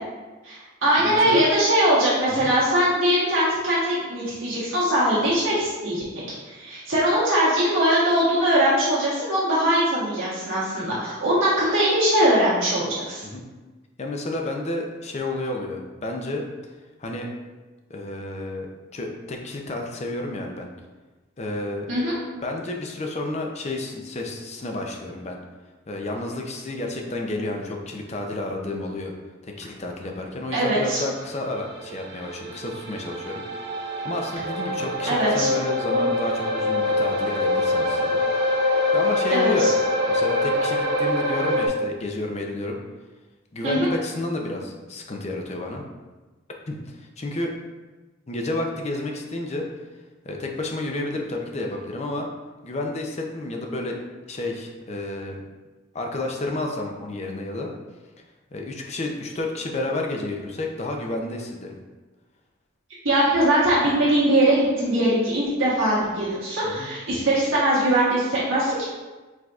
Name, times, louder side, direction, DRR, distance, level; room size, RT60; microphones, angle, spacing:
voice 1, 0.4-6.0 6.5-13.2 21.9-22.2 30.5-31.0 35.1-35.5 39.3-39.7 43.6-43.9 63.0-68.9, right 1 dB, 75° right, -9 dB, 1.4 m, -21 dB
voice 2, 1.0-1.4 2.3-2.5 13.2-13.4 14.0-16.4 17.0-17.3 17.9-18.7 18.9-20.7 21.4-21.9 22.4-25.4 25.9-29.1 29.4-33.4 34.0-38.2 38.7-39.7 40.1-42.8 43.5-45.8 46.7-47.5 48.3-49.7 50.2-52.3 52.6-54.0 54.3-55.4 55.9-57.7 58.5-61.8 66.6-66.9, left 2 dB, 35° left, 2 dB, 0.5 m, -30 dB
sound 1, 31.3-41.7, left 1 dB, 55° right, 0.5 m, -24 dB
4.7 x 3.9 x 2.4 m, 1.2 s
head